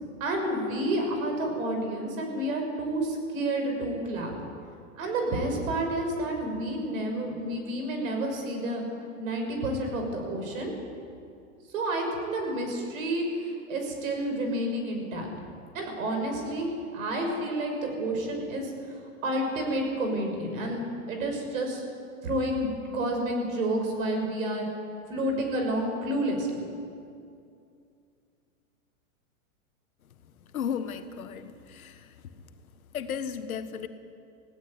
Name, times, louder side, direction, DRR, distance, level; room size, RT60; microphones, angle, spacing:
voice 1, 0.2-4.3 5.0-8.8 9.2-10.7 11.7-15.3 15.7-18.7 19.2-21.8 22.2-24.7 25.1-26.7, right 1 dB, 70° right, 3 dB, 6.3 m, -30 dB
voice 2, 30.5-32.4 32.9-33.9, left 7 dB, 85° left, 9 dB, 1.6 m, -35 dB
18.0 x 16.0 x 9.6 m, 2.5 s
hypercardioid pair, 125°, 41 cm